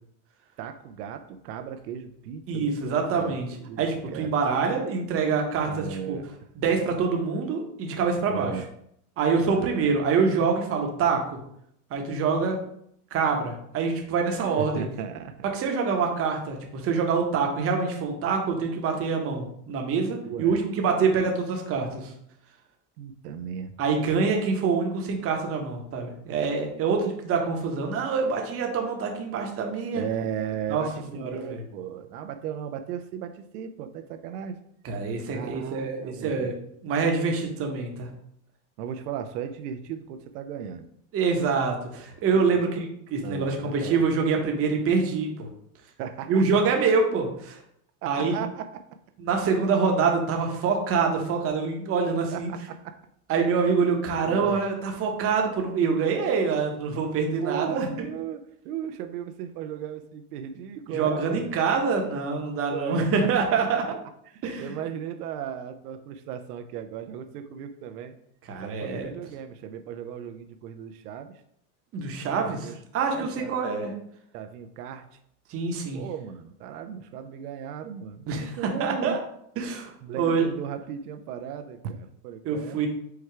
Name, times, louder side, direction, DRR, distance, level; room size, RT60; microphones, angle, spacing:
voice 1, 0.6-4.3 5.6-6.2 8.3-8.7 9.4-9.9 14.3-15.5 20.2-20.6 23.0-23.7 29.9-34.6 35.3-36.5 38.8-40.8 42.5-42.6 43.2-44.1 46.0-46.4 48.0-48.8 52.3-53.0 54.1-54.6 57.4-61.6 62.7-63.1 64.3-68.1 68.6-71.4 72.3-72.8 73.0-73.6 74.3-75.0 75.9-79.2 80.0-82.9, right 8 dB, 85° right, 8 dB, 0.6 m, -36 dB
voice 2, 2.5-3.5 3.8-6.2 6.6-8.5 9.2-11.4 11.9-12.6 13.1-14.8 15.5-22.1 23.8-30.0 30.7-30.8 31.1-31.6 34.8-36.5 36.8-38.1 41.1-45.5 46.3-47.6 48.1-48.4 49.2-52.5 53.3-58.1 60.9-64.0 64.4-64.7 68.5-69.1 71.9-73.9 75.5-76.0 78.3-79.2 79.6-80.5 82.4-82.9, right 5 dB, 30° right, 2 dB, 0.8 m, -25 dB
4.8 x 2.3 x 4.5 m, 0.72 s
supercardioid pair, 135°, 45 cm